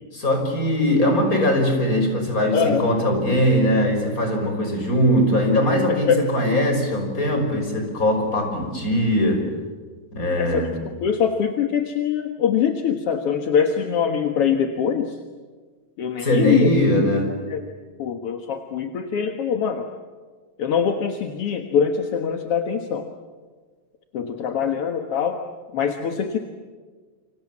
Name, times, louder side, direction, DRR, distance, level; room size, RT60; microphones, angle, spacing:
voice 1, 0.1-9.5 10.1-10.8 16.2-17.4, equal, 20° left, 4 dB, 6.1 m, -20 dB
voice 2, 2.5-2.9 5.9-6.2 10.4-10.6 11.0-15.2 16.0-16.7 17.5-17.6 18.0-19.9 20.6-23.1 24.1-25.4 25.7-26.4, left 7 dB, 55° left, 5 dB, 1.9 m, -23 dB
29.0 x 26.0 x 7.5 m, 1.5 s
omnidirectional pair, 4.1 m